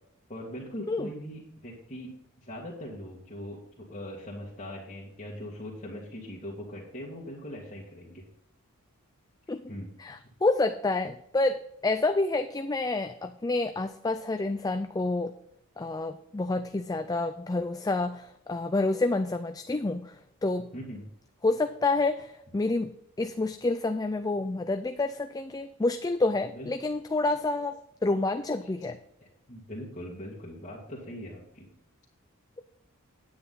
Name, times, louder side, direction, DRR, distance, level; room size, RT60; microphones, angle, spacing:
voice 1, 0.3-2.1 2.4-8.2 9.7-9.9 20.7-21.0 26.5-26.7 28.6-28.7 29.2-31.7, left 1 dB, 30° left, -6 dB, 2.1 m, -41 dB
voice 2, 10.0-15.3 15.8-20.7 21.4-22.9 23.2-29.0, left 2 dB, 15° left, 8 dB, 0.4 m, -28 dB
9.8 x 9.5 x 4.0 m, 0.78 s
head